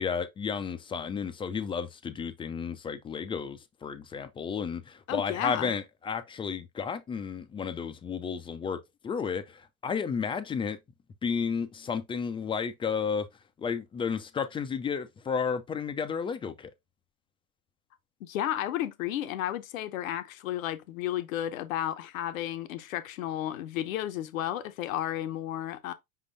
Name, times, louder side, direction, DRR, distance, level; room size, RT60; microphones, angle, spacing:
voice 1, 0.0-10.8 11.2-13.3 13.6-16.7, left 6 dB, 15° left, 0.3 m, -32 dB
voice 2, 5.1-5.7 18.2-25.9, left 12 dB, 70° left, 0.8 m, -33 dB
5.1 x 3.7 x 2.5 m
hypercardioid pair, 85°, 42 cm